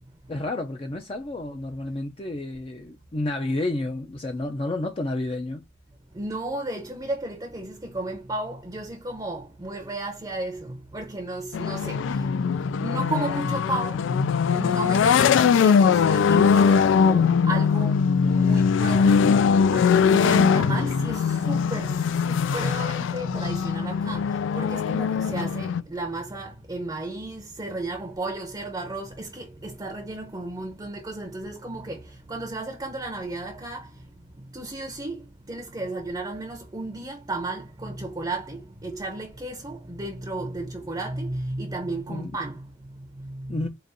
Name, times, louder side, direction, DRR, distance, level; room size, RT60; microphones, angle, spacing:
voice 1, 0.3-5.6 42.1-42.3 43.5-43.7, left 2 dB, 30° left, 0.5 m, -30 dB
voice 2, 6.1-14.2 14.4-43.7, right 2 dB, 20° right, 0.6 m, -34 dB
sound 1, 11.5-25.8, left 6 dB, 85° left, 0.3 m, -21 dB
4.8 x 2.5 x 2.6 m
head